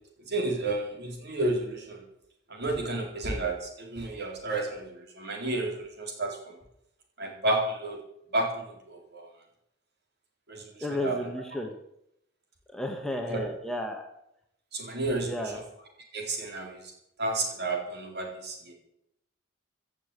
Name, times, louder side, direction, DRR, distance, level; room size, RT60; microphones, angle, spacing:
voice 1, 0.3-2.0 2.5-6.6 7.2-8.0 8.3-9.3 10.5-10.7 11.0-11.2 13.3-13.5 14.7-15.3 16.1-16.9 17.2-18.7, right 2 dB, 55° right, 1 dB, 3.9 m, -31 dB
voice 2, 10.8-11.7 12.7-14.1 15.2-15.6, left 1 dB, 5° left, 3 dB, 1.6 m, -33 dB
16.0 x 7.2 x 8.4 m, 0.78 s
head